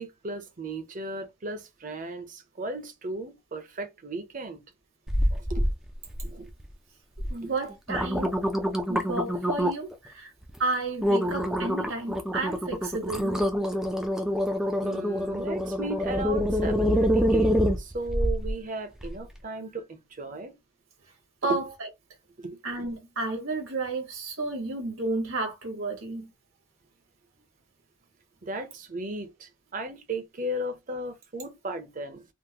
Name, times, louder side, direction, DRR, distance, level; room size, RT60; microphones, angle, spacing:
voice 1, 0.0-4.6 5.3-5.7 6.2-6.5 7.4-7.5 14.8-20.5 21.5-21.6 22.4-22.6 28.4-32.2, right 2 dB, 40° right, 0.7 m, -35 dB
sound 1, 5.1-5.7 6.1-6.6 7.2-7.3 7.7-9.9 10.4-10.6 11.0-18.5 19.0-19.1, equal, ahead, 0.4 m, -26 dB
voice 2, 7.3-8.4 8.9-10.3 10.6-13.4 21.4-21.6 22.6-26.3, right 2 dB, 80° right, 1.4 m, -32 dB
3.6 x 2.1 x 2.8 m
head